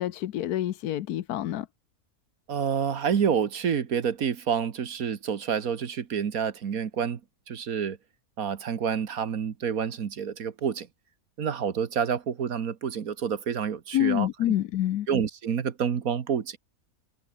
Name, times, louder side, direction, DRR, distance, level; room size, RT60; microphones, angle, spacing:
voice 1, 0.0-1.7 13.9-15.1, left 12 dB, 85° left, 1.3 m, -27 dB
voice 2, 2.5-7.2 7.5-8.0 8.4-10.9 11.4-14.3 15.1-16.6, right 7 dB, 65° right, 1.7 m, -28 dB
omnidirectional pair, 1.6 m